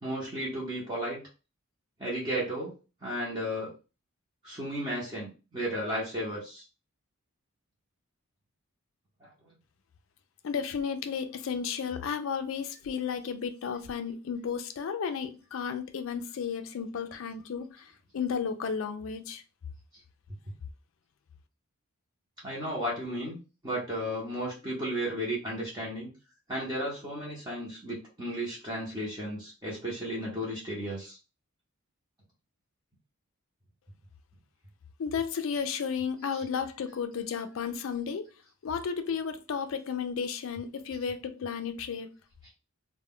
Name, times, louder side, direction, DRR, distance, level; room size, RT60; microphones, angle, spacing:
voice 1, 0.0-1.2 2.0-2.7 3.0-3.7 4.4-6.6 9.2-9.3 22.4-23.4 23.6-26.1 26.5-31.2 36.3-36.4, equal, 20° right, 0.7 m, -34 dB
voice 2, 10.4-19.4 35.0-38.3 38.6-42.1, left 6 dB, 60° left, 0.4 m, -33 dB
2.2 x 2.1 x 3.6 m
head